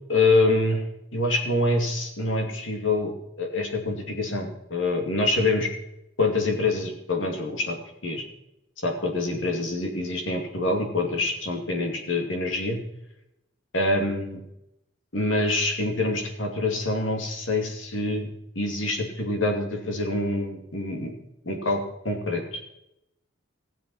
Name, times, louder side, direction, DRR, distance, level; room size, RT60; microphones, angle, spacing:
voice 1, 0.1-0.8 1.1-5.7 6.2-7.8 8.0-8.2 8.8-12.8 13.7-14.4 15.1-18.3 18.5-21.1 21.4-22.6, left 2 dB, 90° left, 3 dB, 2.6 m, -25 dB
17.0 x 7.6 x 5.6 m, 0.85 s
head